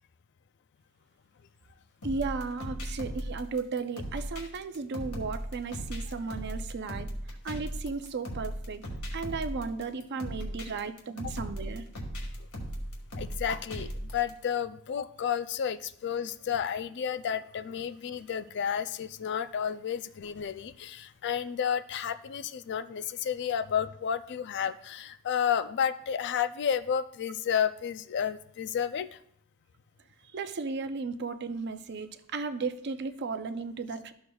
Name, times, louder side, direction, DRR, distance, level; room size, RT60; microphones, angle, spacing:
sound 1, 2.0-14.3, equal, 75° left, 1.7 m, -37 dB
voice 1, 2.0-7.1 7.4-8.8 9.1-11.9 30.3-34.1, right 4 dB, 50° right, 0.5 m, -35 dB
voice 2, 13.2-29.2, left 8 dB, 50° left, 0.3 m, -31 dB
13.0 x 6.4 x 2.3 m
head